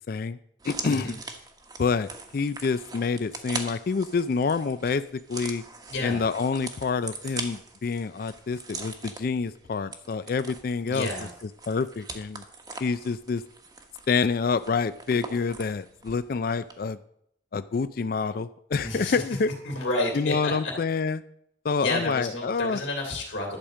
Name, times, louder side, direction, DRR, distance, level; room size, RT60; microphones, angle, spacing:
voice 1, 0.1-0.4 0.6-1.2 1.8-5.6 6.0-11.1 11.7-12.4 12.8-13.4 14.1-17.0 17.5-19.5 20.1-21.2 21.6-22.8, left 4 dB, 50° left, 13 dB, 0.4 m, -27 dB
sound 1, 0.6-16.3 16.6-16.7, right 3 dB, 20° right, 1.1 m, -41 dB
voice 2, 0.9-1.2 5.9-6.2 10.8-11.3 18.8-19.2 19.6-20.7 21.8-23.6, left 2 dB, 80° left, 0 dB, 2.6 m, -30 dB
11.5 x 5.1 x 7.3 m, 0.72 s
head